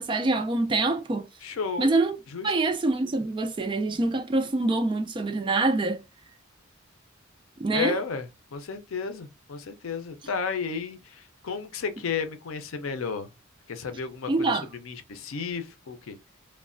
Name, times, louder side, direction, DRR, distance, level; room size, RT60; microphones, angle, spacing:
voice 1, 0.0-1.3 1.8-2.2 2.4-6.0 7.6-8.0 14.3-14.7, right 2 dB, 25° right, 0.4 m, -25 dB
voice 2, 1.4-1.9 2.3-2.5 7.7-13.3 13.7-16.2, left 5 dB, 80° left, 0.5 m, -33 dB
3.1 x 2.1 x 2.5 m
head